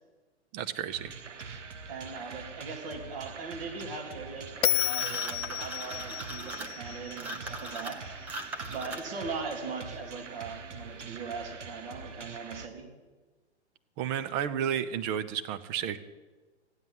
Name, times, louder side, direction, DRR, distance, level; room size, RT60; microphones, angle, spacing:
voice 1, 0.5-1.1 14.0-16.0, right 9 dB, 25° right, 11 dB, 0.7 m, -32 dB
sound 1, 0.9-12.7, right 5 dB, 85° right, 1.4 m, -44 dB
voice 2, 1.9-8.0 8.7-12.9, right 4 dB, 50° right, 2 dB, 3.6 m, -40 dB
Bell, 4.6-7.9, left 12 dB, 60° left, 0.5 m, -32 dB
sound 2, 4.7-9.3, right 2 dB, 5° right, 0.3 m, -39 dB
14.0 x 9.7 x 7.7 m, 1.3 s
hypercardioid pair, 125°, 35 cm